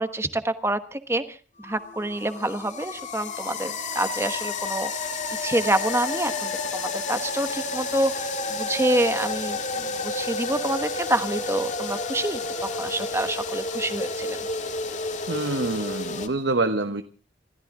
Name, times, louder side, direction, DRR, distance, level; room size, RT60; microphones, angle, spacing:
voice 1, 0.0-1.4 1.6-4.9 5.4-14.5, right 1 dB, 15° right, 9 dB, 1.2 m, -27 dB
sound 1, 1.6-16.3, left 3 dB, 40° left, 1.9 m, -31 dB
voice 2, 15.3-17.0, right 2 dB, 70° right, 8 dB, 1.1 m, -26 dB
27.5 x 14.0 x 3.7 m, 0.37 s
head